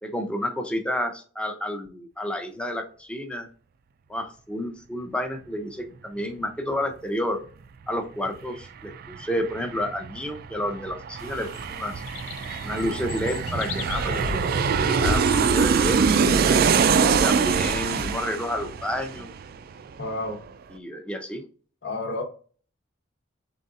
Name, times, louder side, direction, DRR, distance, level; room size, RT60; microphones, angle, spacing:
voice 1, 0.0-3.5 4.1-7.4 7.9-11.9 12.6-16.2 17.1-19.3 20.7-21.4, equal, 5° left, 0.6 m, -30 dB
Aircraft, 8.3-8.4 8.6-19.9 20.2-20.3, right 6 dB, 50° right, 0.3 m, -24 dB
sound 1, 11.2-18.2, left 3 dB, 85° left, 0.5 m, -35 dB
voice 2, 20.0-20.4 21.8-22.2, left 2 dB, 65° left, 1.2 m, -30 dB
4.0 x 3.8 x 2.5 m
head